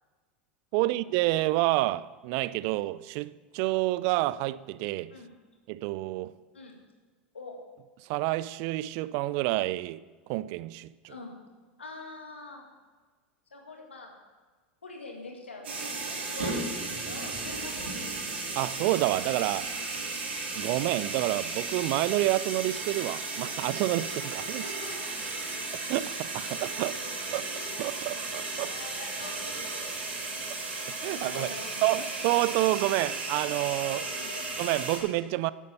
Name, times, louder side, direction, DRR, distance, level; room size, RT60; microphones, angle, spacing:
voice 1, 0.7-5.1 5.7-6.4 8.1-10.0 10.3-11.1 18.6-19.7 20.6-24.6 25.9-27.0 27.3-27.5 27.8-28.7 30.9-31.5 31.8-34.1 34.6-35.5, right 17 dB, 55° right, 0.4 m, -28 dB
voice 2, 11.1-11.4 11.8-12.7 13.5-14.1 14.8-17.9 24.6-25.7 26.9-27.1 28.7-30.2 31.1-32.1 34.1-34.4, left 3 dB, 90° left, 2.3 m, -45 dB
sound 1, 15.6-35.0, right 3 dB, 80° right, 3.5 m, -35 dB
11.0 x 8.3 x 6.9 m
hypercardioid pair, 90°, 6 cm